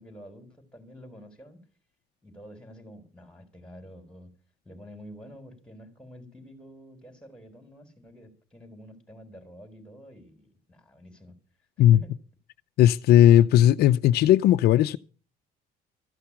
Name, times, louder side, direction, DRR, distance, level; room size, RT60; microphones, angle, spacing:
voice 1, 0.0-1.6 2.2-4.3 4.6-11.4 11.9-12.1, equal, 5° left, 4.1 m, -48 dB
voice 2, 12.8-15.0, left 12 dB, 75° left, 0.6 m, -17 dB
14.5 x 5.8 x 9.8 m
cardioid pair, 110°, 17 cm